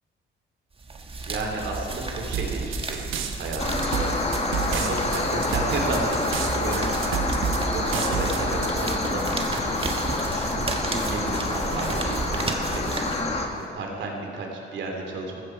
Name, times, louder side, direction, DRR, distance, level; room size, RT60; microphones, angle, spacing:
sound 1, 0.8-13.7, right 3 dB, 25° right, 1.4 m, -32 dB
voice 1, 1.2-3.0 3.4-4.1 4.5-15.4, right 3 dB, 70° right, 1 dB, 3.0 m, -33 dB
sound 2, 2.3-8.7, right 8 dB, 85° right, 1.1 m, -30 dB
sound 3, 3.6-13.5, left 2 dB, 30° left, 1.7 m, -27 dB
15.0 x 14.0 x 4.6 m, 2.5 s
cardioid pair, 90°, 20 cm